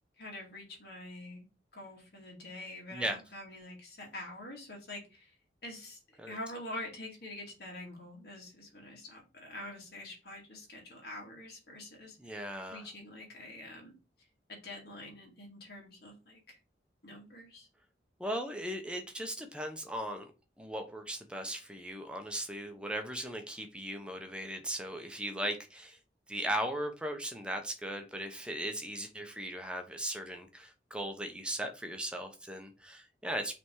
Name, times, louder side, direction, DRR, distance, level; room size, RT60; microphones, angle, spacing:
voice 1, 0.2-1.5 1.7-5.3 5.6-12.3 12.7-14.0 14.5-16.6 17.0-17.7, left 1 dB, 60° left, -1 dB, 2.5 m, -46 dB
voice 2, 12.2-12.8 18.2-20.3 20.6-26.0 26.3-33.5, right 1 dB, 5° right, 4 dB, 0.9 m, -38 dB
5.8 x 3.6 x 4.7 m, 0.31 s
head